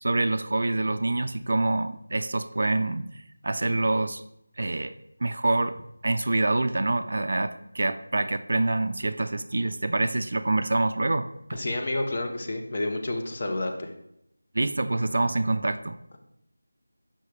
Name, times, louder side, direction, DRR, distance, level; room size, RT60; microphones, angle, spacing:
voice 1, 0.0-3.1 3.4-4.2 4.6-5.8 6.0-11.6 14.5-16.0, right 2 dB, 45° right, 10 dB, 0.3 m, -26 dB
voice 2, 11.5-13.9, left 2 dB, 25° left, 3 dB, 0.5 m, -29 dB
6.8 x 5.6 x 3.2 m, 0.80 s
figure-of-eight pair, 180°, 0 cm